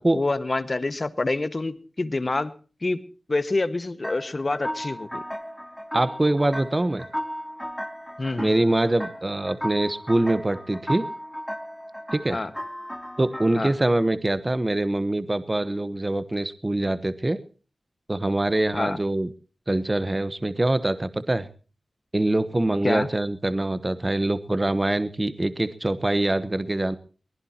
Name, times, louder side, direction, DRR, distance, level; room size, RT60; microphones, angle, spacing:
voice 1, 0.1-2.5 2.8-3.0 3.3-5.2 8.2-8.5 12.3-12.5 13.5-13.7 18.7-19.0 22.8-23.1, left 2 dB, 40° left, 12 dB, 1.6 m, -27 dB
sound 1, 4.0-13.9, equal, 5° left, 2.4 m, -35 dB
voice 2, 5.9-7.1 8.4-11.0 12.1-12.4 13.2-17.4 18.1-19.3 19.7-21.5 22.1-27.0, right 1 dB, 25° right, 13 dB, 1.2 m, -24 dB
22.0 x 20.0 x 2.9 m, 0.38 s
wide cardioid pair, 85°, 0 cm